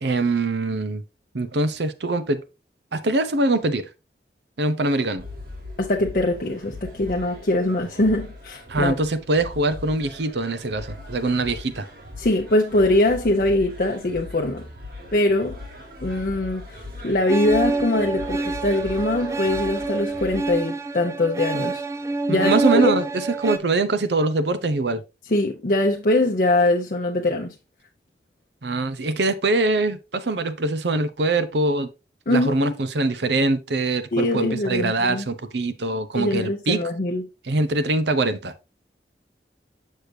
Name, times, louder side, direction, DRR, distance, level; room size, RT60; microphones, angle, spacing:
voice 1, 0.0-1.0 1.3-2.4 2.9-3.8 4.6-5.2 8.7-11.9 22.3-25.0 28.6-31.9 32.3-36.8 37.5-38.5, right 2 dB, 80° right, 0.8 m, -23 dB
sound 1, 5.2-20.6, left 2 dB, 55° right, 1.9 m, -39 dB
voice 2, 5.8-9.0 12.2-14.6 15.1-15.6 16.0-21.8 22.3-22.6 22.8-22.9 25.3-27.5 32.3-32.7 34.1-35.3 36.1-37.2, left 1 dB, 50° left, 0.7 m, -22 dB
sound 2, 17.3-23.6, right 3 dB, 15° right, 0.5 m, -26 dB
6.6 x 6.5 x 2.7 m
head